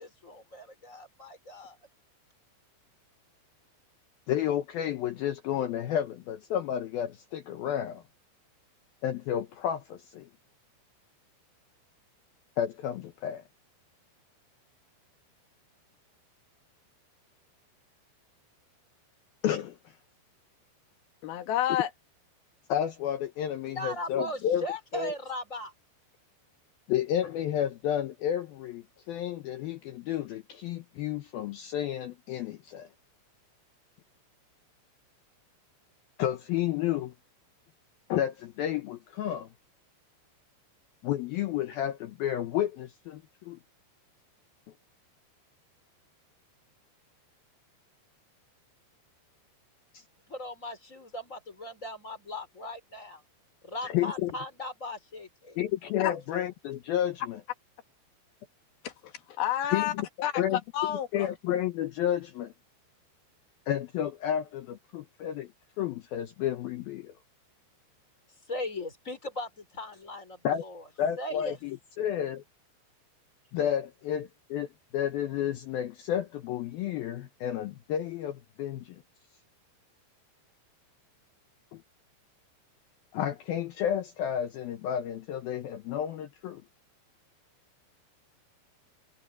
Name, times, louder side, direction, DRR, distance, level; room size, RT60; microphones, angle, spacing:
voice 1, 0.0-1.8 23.7-25.7 50.3-53.2 53.6-55.6 68.5-70.8 71.2-71.6, left 1 dB, 15° left, 4.4 m, -38 dB
voice 2, 4.3-8.0 9.0-10.3 12.6-13.4 19.4-19.9 22.7-24.6 24.9-25.1 26.9-32.9 36.2-37.1 38.1-39.5 41.0-43.6 49.9-50.0 53.8-54.3 55.6-57.4 59.7-60.1 60.4-60.6 61.1-62.5 63.7-65.5 65.8-67.1 70.4-70.6 71.0-72.4 73.5-79.0 81.7-81.8 83.1-86.6, left 10 dB, 80° left, 2.1 m, -31 dB
voice 3, 21.2-21.9 56.0-56.1 58.8-59.1 59.4-59.9 60.2-60.4 60.7-61.3, left 11 dB, 60° left, 3.3 m, -29 dB
omnidirectional pair, 5.6 m